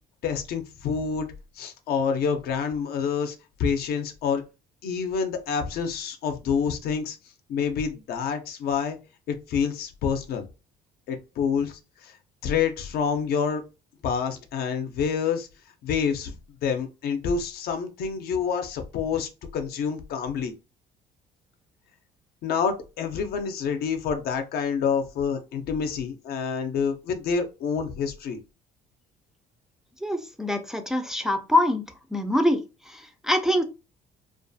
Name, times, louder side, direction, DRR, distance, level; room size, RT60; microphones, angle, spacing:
voice 1, 0.2-1.3 1.6-3.3 3.6-4.4 4.8-7.2 7.5-9.0 9.3-10.5 11.1-12.2 12.4-13.6 14.0-15.5 15.8-16.3 16.6-20.5 22.4-28.4, left 6 dB, 65° left, 6 dB, 0.5 m, -27 dB
voice 2, 30.0-31.8 32.1-33.6, left 1 dB, 5° right, 5 dB, 0.3 m, -24 dB
2.4 x 2.3 x 2.5 m, 0.29 s
cardioid pair, 110°, 17 cm